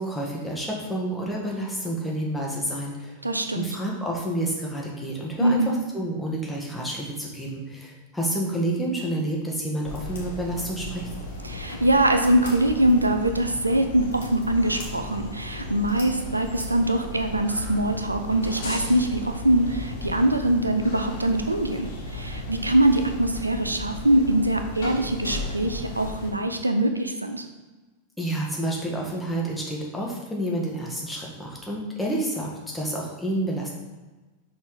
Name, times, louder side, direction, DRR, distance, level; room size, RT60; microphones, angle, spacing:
voice 1, 0.0-3.2 3.5-11.1 28.2-33.7, right 1 dB, 5° left, -3 dB, 1.6 m, -29 dB
voice 2, 3.2-3.8 5.4-5.7 11.4-27.5, right 1 dB, 85° right, 6 dB, 0.5 m, -23 dB
sound 1, 9.8-26.3, left 2 dB, 60° left, 1.9 m, -35 dB
6.0 x 4.1 x 4.8 m, 1.2 s
figure-of-eight pair, 90°, 0 cm